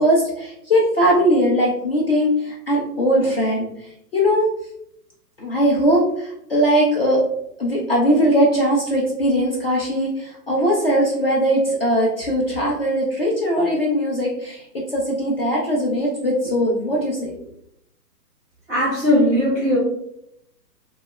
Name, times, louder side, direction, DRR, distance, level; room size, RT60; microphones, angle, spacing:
voice 1, 0.0-4.5 5.4-7.2 7.6-17.4, equal, 40° left, -4 dB, 0.4 m, -20 dB
voice 2, 18.7-19.8, left 1 dB, 10° right, -8 dB, 0.5 m, -18 dB
2.2 x 2.0 x 2.9 m, 0.75 s
hypercardioid pair, 140°, 49 cm